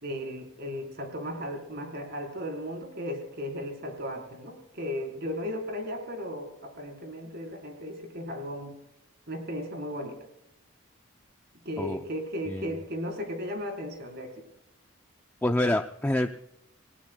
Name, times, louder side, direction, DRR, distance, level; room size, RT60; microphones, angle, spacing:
voice 1, 0.0-8.8 9.3-10.2 11.6-14.4, equal, 50° right, 4 dB, 3.9 m, -36 dB
voice 2, 15.4-16.4, left 1 dB, 10° left, 5 dB, 0.5 m, -27 dB
28.5 x 19.0 x 2.2 m, 0.81 s
head